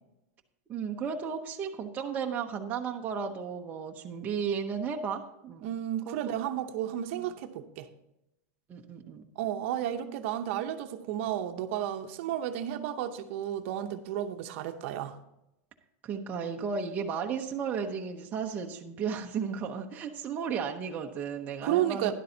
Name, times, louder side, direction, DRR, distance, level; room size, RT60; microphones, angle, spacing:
voice 1, 0.7-5.7 6.0-6.2 8.7-9.3 16.0-22.1, right 6 dB, 20° right, 1 dB, 0.7 m, -34 dB
voice 2, 5.6-7.9 9.4-15.1 21.6-22.1, right 11 dB, 50° right, 7 dB, 0.8 m, -32 dB
12.0 x 11.0 x 2.8 m, 0.87 s
supercardioid pair, 165°, 9 cm